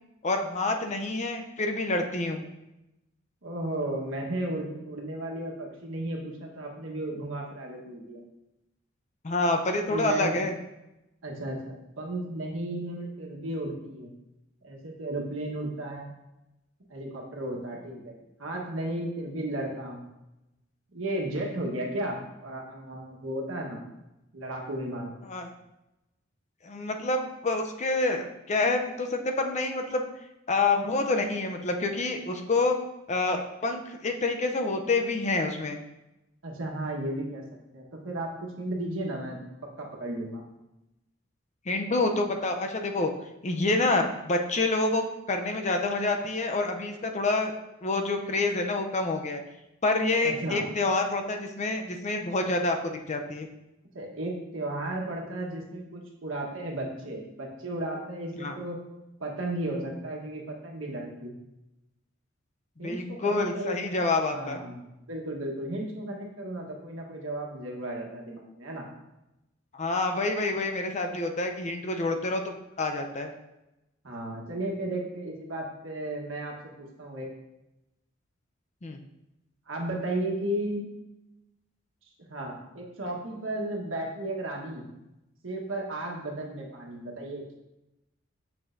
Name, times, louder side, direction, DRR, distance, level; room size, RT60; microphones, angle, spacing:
voice 1, 0.2-2.5 9.2-10.5 25.3-25.5 26.6-30.0 30.5-32.8 33.1-35.8 41.7-43.1 43.4-47.5 47.8-49.4 49.8-53.5 58.4-58.6 62.8-64.6 69.7-73.3 78.8-79.0, left 2 dB, 35° left, 4 dB, 0.6 m, -27 dB
voice 2, 3.4-8.2 9.9-10.4 11.2-14.1 14.6-16.1 16.9-20.0 20.9-23.8 24.3-25.1 36.4-37.4 37.7-40.4 50.2-50.6 53.9-58.8 59.2-61.3 62.8-64.0 64.3-68.8 74.0-77.3 79.7-80.9 82.3-84.8 85.4-87.5, right 1 dB, 85° right, 0 dB, 1.3 m, -34 dB
7.0 x 6.1 x 2.6 m, 0.93 s
head